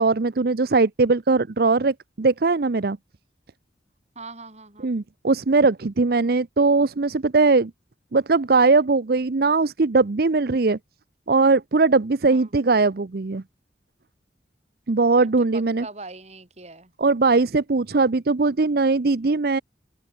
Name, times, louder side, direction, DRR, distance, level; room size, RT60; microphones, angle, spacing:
voice 1, 0.0-3.0 4.8-7.7 8.1-10.8 11.3-13.4 14.9-15.9 17.0-19.6, right 3 dB, 60° right, 0.6 m, -20 dB
voice 2, 4.1-4.9 12.3-12.5 15.2-16.9, right 3 dB, 40° right, 6.0 m, -41 dB
open air
head